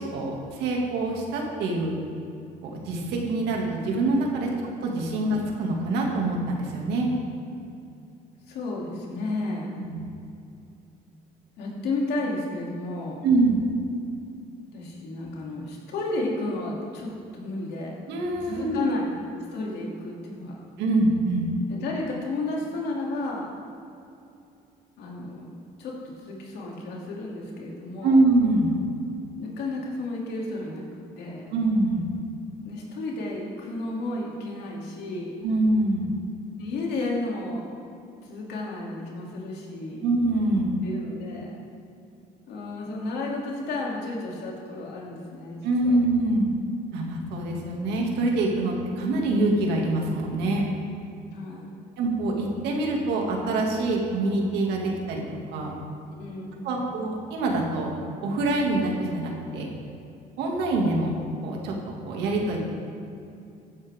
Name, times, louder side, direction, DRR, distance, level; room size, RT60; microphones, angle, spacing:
voice 1, 0.0-1.9 2.6-4.5 4.8-7.1 9.8-10.0 13.2-13.6 18.1-18.9 20.8-21.5 28.0-28.7 31.5-32.0 35.4-36.1 40.0-40.7 45.6-46.5 46.9-50.6 52.0-55.2 55.5-55.7 56.6-57.9 58.2-59.7 60.4-61.2 61.4-61.7 62.0-62.6, right 2 dB, 85° right, -1 dB, 2.4 m, -25 dB
voice 2, 8.5-9.7 11.6-13.2 14.7-18.0 18.4-20.6 21.7-23.5 25.0-25.5 25.8-28.2 29.4-30.8 31.2-31.5 32.6-35.4 36.6-37.6 38.2-40.1 40.8-41.5 42.5-46.0 51.3-51.9 56.1-56.9, left 2 dB, 75° left, -3 dB, 2.9 m, -32 dB
14.5 x 10.5 x 3.7 m, 2.6 s
cardioid pair, 110°, 17 cm